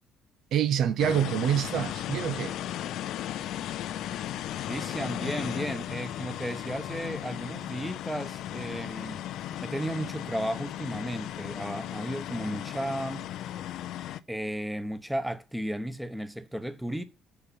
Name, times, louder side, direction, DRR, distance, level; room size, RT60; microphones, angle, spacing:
voice 1, 0.5-2.6, right 9 dB, 70° right, 0.6 m, -26 dB
sound 1, 1.0-14.2, left 12 dB, 75° left, 0.5 m, -36 dB
voice 2, 4.7-9.2 9.6-13.3 14.3-17.0, right 1 dB, 5° right, 1.1 m, -34 dB
6.7 x 5.9 x 7.1 m
supercardioid pair, 85°, 0 cm